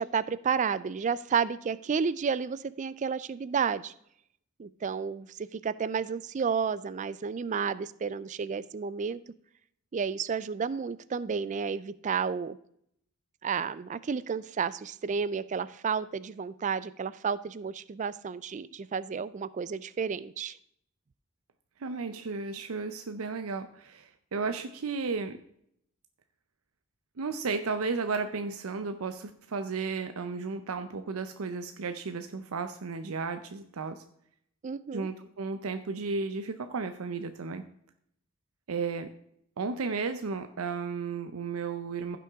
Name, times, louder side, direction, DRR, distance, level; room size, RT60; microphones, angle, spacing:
voice 1, 0.0-3.9 4.6-9.2 9.9-12.6 13.4-20.6 34.6-35.1, right 6 dB, 35° right, 17 dB, 0.3 m, -31 dB
voice 2, 21.8-25.4 27.2-34.0 34.9-37.6 38.7-39.1 39.6-42.2, right 4 dB, 85° right, 9 dB, 0.6 m, -34 dB
15.0 x 6.0 x 3.5 m, 0.70 s
head